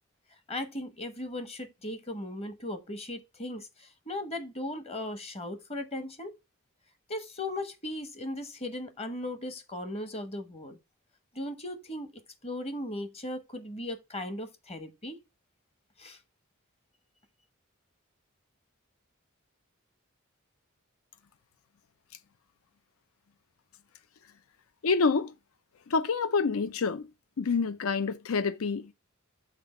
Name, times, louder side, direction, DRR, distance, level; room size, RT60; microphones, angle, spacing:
voice 1, 0.5-6.4 7.1-10.8 11.3-15.2 16.0-16.2, left 1 dB, 30° left, 1.0 m, -37 dB
voice 2, 24.8-25.3 25.9-27.1 27.4-28.9, left 4 dB, 90° left, 0.6 m, -27 dB
6.0 x 4.2 x 4.2 m
head